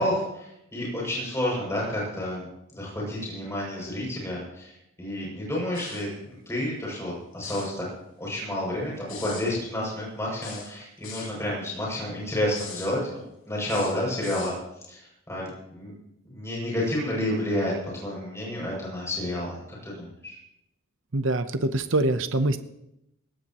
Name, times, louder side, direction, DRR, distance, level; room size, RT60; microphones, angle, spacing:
voice 1, 0.0-2.5 2.7-4.7 5.0-6.1 6.5-7.8 8.2-13.0 13.5-14.5 14.9-15.9 16.3-17.7 18.0-20.4, left 1 dB, 15° left, -4 dB, 6.9 m, -30 dB
sound 1, 5.7-6.1 7.3-7.7 9.1-9.5 10.4-11.3 12.5-12.9 13.6-14.6, left 6 dB, 75° left, 5.4 m, -41 dB
voice 2, 21.1-22.6, right 2 dB, 65° right, 9 dB, 0.9 m, -24 dB
20.5 x 19.0 x 3.1 m, 0.83 s
head